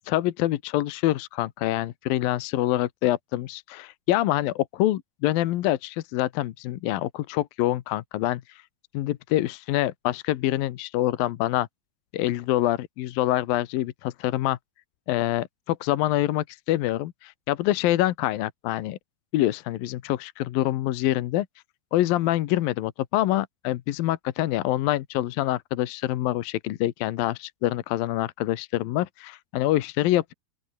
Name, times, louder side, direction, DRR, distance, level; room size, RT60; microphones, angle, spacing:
voice 1, 0.1-8.4 8.9-11.7 12.1-14.6 15.1-19.0 19.3-21.5 21.9-30.3, left 15 dB, 70° left, 2.5 m, -26 dB
open air
omnidirectional pair, 5.0 m